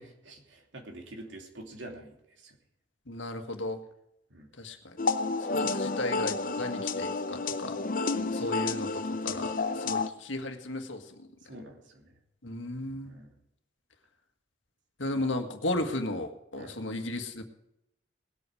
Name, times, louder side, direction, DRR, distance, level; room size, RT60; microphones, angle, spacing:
voice 1, 0.0-2.6 4.3-4.5 8.2-8.6 11.4-12.1 13.0-13.3 15.1-15.3 15.7-16.0 16.6-16.8, right 1 dB, 75° right, 2 dB, 2.9 m, -47 dB
voice 2, 3.1-3.8 4.6-4.8 5.5-7.8 8.3-11.0 12.4-13.2 15.0-17.4, left 1 dB, 80° left, 5 dB, 1.8 m, -34 dB
sound 1, 5.0-10.1, left 3 dB, 45° left, 0.8 m, -30 dB
20.0 x 8.4 x 4.9 m, 0.81 s
head